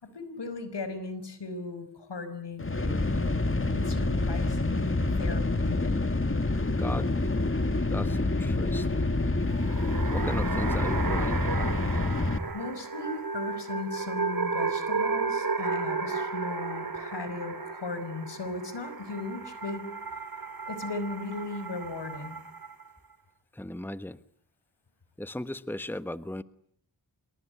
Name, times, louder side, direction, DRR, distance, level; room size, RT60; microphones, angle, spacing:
voice 1, 0.0-3.4 3.7-6.0 12.5-19.9 20.7-22.4, left 3 dB, 80° left, 12 dB, 5.5 m, -37 dB
sound 1, 2.6-12.4, left 2 dB, 30° left, 2.1 m, -27 dB
voice 2, 6.6-7.4 7.9-9.1 10.1-11.5 23.5-24.2 25.2-26.4, left 1 dB, 5° left, 13 dB, 1.3 m, -36 dB
sound 2, 9.5-22.9, right 4 dB, 55° right, 3.7 m, -33 dB
26.5 x 22.5 x 10.0 m, 0.63 s
cardioid pair, 50°, 41 cm